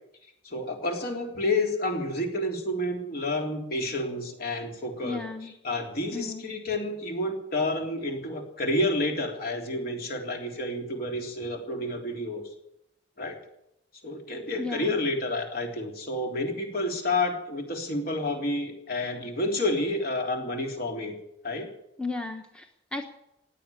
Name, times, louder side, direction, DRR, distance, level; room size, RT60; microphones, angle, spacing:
voice 1, 0.4-5.2 5.6-12.4 13.2-13.4 14.0-21.2 21.4-21.7, left 1 dB, 55° left, 2 dB, 3.5 m, -29 dB
voice 2, 5.0-5.5 6.1-6.5 14.6-15.0 22.0-23.1, left 3 dB, 5° left, 4 dB, 1.1 m, -35 dB
16.5 x 10.0 x 8.7 m, 0.80 s
head